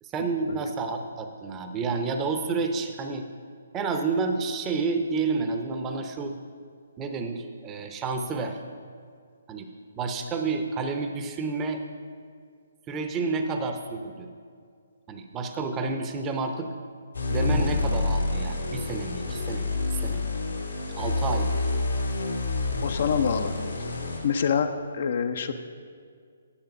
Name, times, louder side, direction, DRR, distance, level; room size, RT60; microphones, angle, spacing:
voice 1, 0.0-3.3 3.7-6.4 7.0-8.6 9.5-9.7 10.0-11.8 12.9-14.3 15.1-16.7 17.3-20.3 21.0-21.6, right 4 dB, 20° right, 5 dB, 0.7 m, -30 dB
sound 1, 17.1-24.3, left 3 dB, 85° left, 1.9 m, -28 dB
voice 2, 22.8-23.5 24.2-25.5, left 6 dB, 55° left, 7 dB, 0.6 m, -26 dB
9.9 x 7.2 x 5.2 m, 2.2 s
figure-of-eight pair, 140°, 0 cm